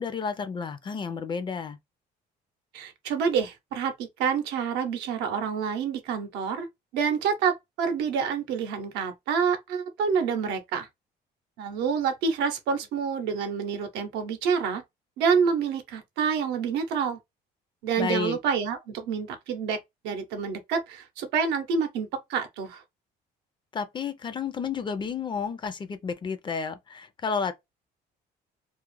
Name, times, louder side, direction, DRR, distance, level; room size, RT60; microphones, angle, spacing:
voice 1, 0.0-1.8 18.0-18.4 23.7-27.5, left 5 dB, 30° left, 0.4 m, -31 dB
voice 2, 2.7-6.7 6.9-10.9 11.6-14.8 15.2-17.2 17.8-19.8 20.0-22.8, right 6 dB, 90° right, 0.6 m, -27 dB
2.4 x 2.0 x 3.0 m
cardioid pair, 110°, 17 cm